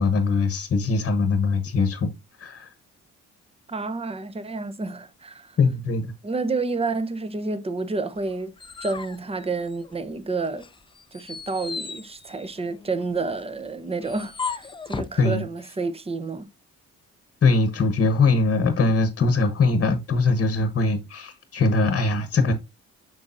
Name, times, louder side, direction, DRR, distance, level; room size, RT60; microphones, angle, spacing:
voice 1, 0.0-2.1 2.4-2.7 5.6-6.1 15.2-15.4 17.4-22.5, left 3 dB, 40° left, 1.1 m, -21 dB
voice 2, 3.7-5.6 6.2-8.5 8.8-10.7 11.1-16.5, right 3 dB, 20° right, 0.8 m, -29 dB
sound 1, 8.2-10.2 10.6-15.2, left 5 dB, 15° left, 0.5 m, -36 dB
6.9 x 6.3 x 2.6 m
cardioid pair, 90°, 30 cm